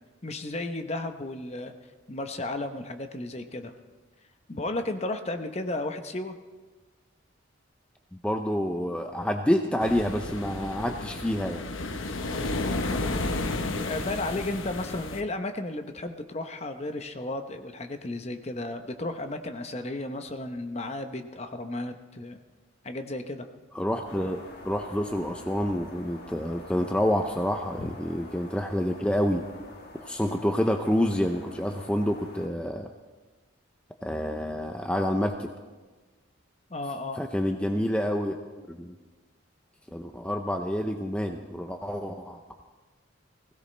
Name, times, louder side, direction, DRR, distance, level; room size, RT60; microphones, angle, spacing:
voice 1, 0.2-1.7 2.1-3.7 4.5-6.3 12.7-13.5 13.8-22.4 22.8-23.5 27.8-27.9 36.7-37.2, left 2 dB, 30° left, 7 dB, 0.8 m, -34 dB
voice 2, 8.1-11.7 23.7-29.4 30.0-32.9 34.0-35.5 37.2-38.4 38.7-39.0 39.9-42.4, equal, 5° left, 4 dB, 0.5 m, -28 dB
sound 1, 9.8-15.2, left 2 dB, 80° left, 0.9 m, -32 dB
sound 2, 24.0-32.5, left 1 dB, 50° left, 1.6 m, -47 dB
20.0 x 16.5 x 3.3 m, 1.3 s
head